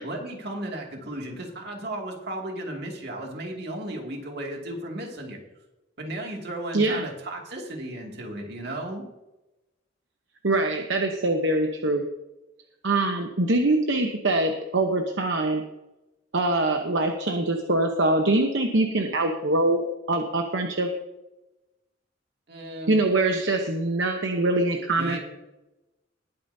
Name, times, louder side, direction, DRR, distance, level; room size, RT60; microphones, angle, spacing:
voice 1, 0.0-5.4 6.0-9.0 22.5-23.0 24.9-25.2, right 1 dB, 60° right, 0 dB, 2.4 m, -35 dB
voice 2, 6.7-7.0 10.4-12.0 12.8-15.6 16.3-20.9 22.9-25.2, right 2 dB, 75° right, 4 dB, 1.0 m, -23 dB
20.5 x 8.8 x 2.8 m, 1.0 s
head